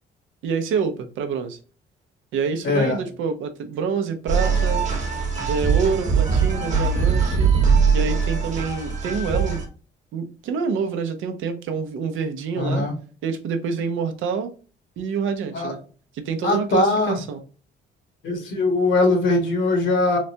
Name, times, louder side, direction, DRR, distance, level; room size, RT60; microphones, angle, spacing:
voice 1, 0.4-1.6 2.3-4.8 5.5-7.6 7.9-9.6 10.1-12.9 13.2-14.5 15.0-15.8 16.1-17.4, right 5 dB, 80° right, 7 dB, 0.6 m, -27 dB
voice 2, 2.6-3.0 12.5-12.9 15.5-15.7 16.4-17.2 18.2-20.2, left 2 dB, 70° left, 3 dB, 1.4 m, -21 dB
sound 1, 4.3-9.7, right 5 dB, 35° right, 1.1 m, -21 dB
4.0 x 2.2 x 2.6 m, 0.37 s
cardioid pair, 90°, 20 cm